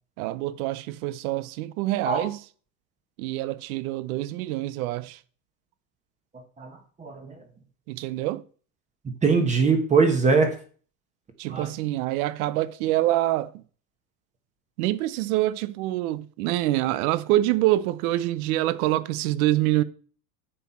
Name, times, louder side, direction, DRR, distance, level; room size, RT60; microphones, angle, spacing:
voice 1, 0.2-2.4 3.2-5.2 7.9-8.4 11.4-13.5 14.8-19.8, right 15 dB, 70° right, 1.0 m, -26 dB
voice 2, 6.3-7.3 9.2-10.5 11.5-11.7, right 4 dB, 15° right, 1.2 m, -22 dB
10.0 x 7.4 x 4.4 m
cardioid pair, 175°, 45 cm